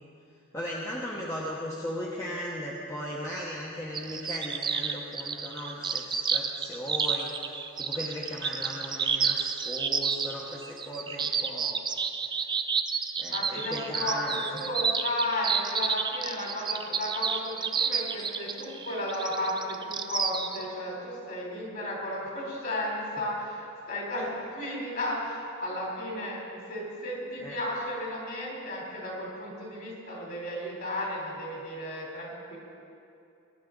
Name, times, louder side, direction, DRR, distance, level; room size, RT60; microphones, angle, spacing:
voice 1, 0.5-7.3 7.8-11.8 13.2-14.6 27.4-27.6, equal, 15° left, -5 dB, 1.1 m, -37 dB
sound 1, 3.9-20.6, right 6 dB, 20° right, 0.4 m, -30 dB
voice 2, 13.3-32.6, left 1 dB, 45° left, -3 dB, 3.7 m, -34 dB
20.5 x 10.5 x 3.9 m, 2.7 s
head